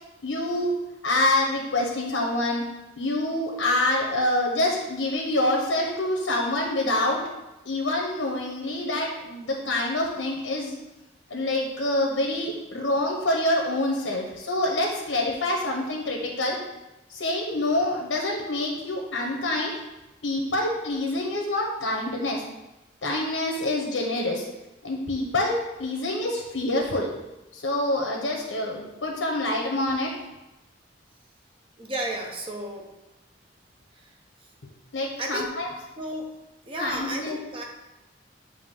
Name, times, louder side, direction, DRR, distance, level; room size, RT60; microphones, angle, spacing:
voice 1, 0.2-0.7 1.0-2.7 3.0-7.2 7.6-10.8 11.3-16.6 17.1-19.8 20.2-22.4 23.0-24.5 24.8-27.1 27.5-30.1 34.9-35.7 36.8-37.4, left 1 dB, 90° left, -1 dB, 1.1 m, -26 dB
voice 2, 31.8-32.9 35.2-35.5 36.0-36.3 36.7-37.6, right 1 dB, 30° right, 1 dB, 0.9 m, -32 dB
7.8 x 2.9 x 5.8 m, 1.0 s
head